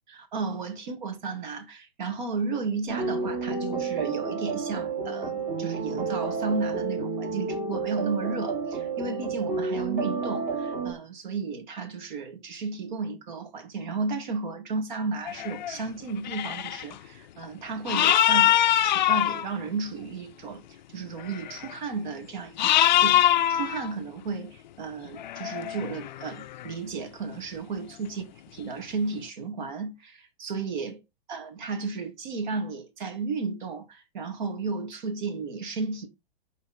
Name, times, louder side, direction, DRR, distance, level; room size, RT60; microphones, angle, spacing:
voice 1, 0.3-18.5 18.8-20.6 20.9-28.2 28.6-31.0 31.3-36.1, right 4 dB, 50° right, 2.6 m, -33 dB
sound 1, 2.9-10.9, right 4 dB, 25° right, 2.7 m, -30 dB
sound 2, 15.3-15.8 16.2-16.9 17.9-19.4 21.2-21.7 22.6-23.9 25.0-26.7, left 12 dB, 50° left, 0.4 m, -23 dB
10.5 x 4.1 x 4.4 m
figure-of-eight pair, 110°, 30 cm